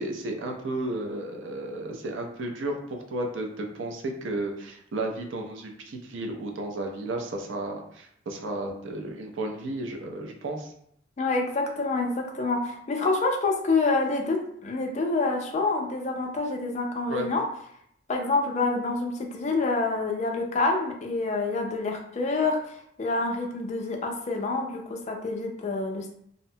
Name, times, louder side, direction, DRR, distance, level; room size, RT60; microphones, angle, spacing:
voice 1, 0.0-10.7 17.1-17.3, right 1 dB, 75° right, 2 dB, 0.5 m, -33 dB
voice 2, 11.2-17.4 18.1-26.1, left 3 dB, 35° left, 3 dB, 0.3 m, -27 dB
2.7 x 2.1 x 2.6 m, 0.69 s
head